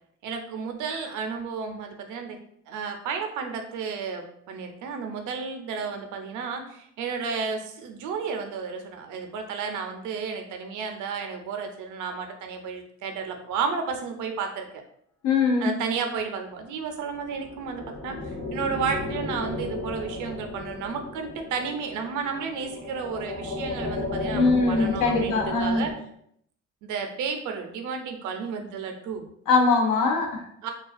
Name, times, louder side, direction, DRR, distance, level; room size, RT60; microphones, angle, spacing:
voice 1, 0.2-2.4 2.7-14.8 15.6-25.9 26.8-29.2 30.6-30.7, right 5 dB, 80° right, 5 dB, 0.5 m, -32 dB
voice 2, 15.2-15.7 24.3-25.9 29.5-30.5, left 4 dB, 80° left, 2 dB, 0.6 m, -22 dB
sound 1, 17.1-25.9, left 2 dB, 45° left, 0.9 m, -34 dB
2.3 x 2.2 x 2.4 m, 0.69 s
cardioid pair, 90°, 30 cm